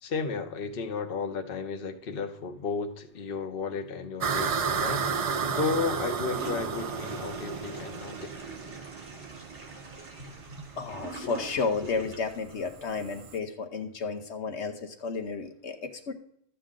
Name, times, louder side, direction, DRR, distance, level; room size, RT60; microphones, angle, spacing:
voice 1, 0.0-8.3, left 5 dB, 50° left, 6 dB, 1.1 m, -33 dB
sound 1, 4.2-13.4, right 6 dB, 50° right, 0.4 m, -33 dB
Toilet flush, 6.3-12.4, right 3 dB, 70° right, 2.4 m, -44 dB
voice 2, 10.8-16.1, left 4 dB, 70° left, 4 dB, 1.1 m, -32 dB
12.5 x 8.3 x 3.7 m, 0.69 s
omnidirectional pair, 1.2 m